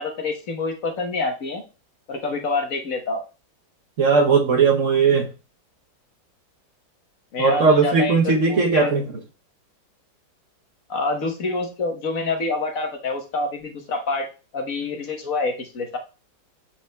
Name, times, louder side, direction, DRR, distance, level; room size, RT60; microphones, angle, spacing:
voice 1, 0.0-1.6 2.1-3.2 7.3-8.9 10.9-14.3 14.5-16.0, left 3 dB, 50° left, 3 dB, 1.3 m, -27 dB
voice 2, 4.0-5.3 7.4-9.1, right 5 dB, 55° right, 3 dB, 0.9 m, -18 dB
7.4 x 5.9 x 2.2 m, 0.32 s
omnidirectional pair, 2.0 m